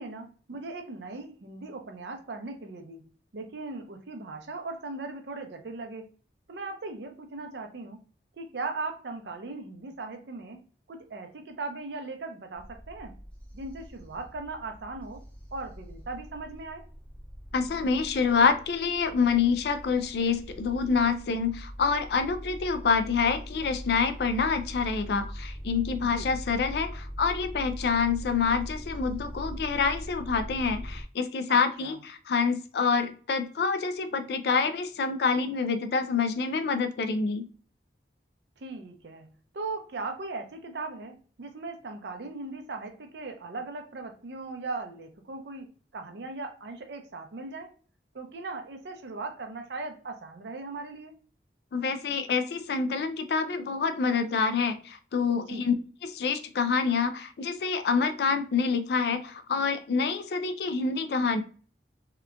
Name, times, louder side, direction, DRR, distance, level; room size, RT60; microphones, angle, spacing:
voice 1, 0.0-3.0 3.3-6.1 6.5-8.0 8.4-10.6 10.9-13.2 13.5-15.2 15.5-16.8 26.0-26.4 31.5-32.0 38.6-39.3 39.5-47.7 48.1-51.1 55.3-55.7, right 3 dB, 75° right, 5 dB, 0.5 m, -38 dB
sound 1, 12.5-31.0, equal, 10° left, 0.6 m, -41 dB
voice 2, 17.5-37.5 51.7-55.7 56.0-61.4, left 5 dB, 65° left, 10 dB, 0.3 m, -27 dB
2.8 x 2.2 x 2.4 m, 0.40 s
head